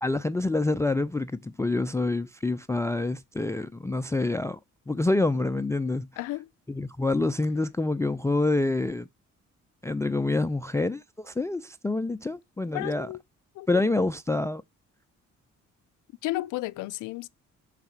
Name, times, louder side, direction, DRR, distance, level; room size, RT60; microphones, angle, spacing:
voice 1, 0.0-4.6 4.9-6.1 6.7-9.1 9.8-13.1 13.7-14.6, left 2 dB, 10° left, 0.3 m, -27 dB
voice 2, 6.2-6.5 12.7-13.2 13.5-13.8 16.2-17.3, left 18 dB, 85° left, 0.5 m, -33 dB
6.4 x 4.1 x 5.9 m
cardioid pair, 90°, 30 cm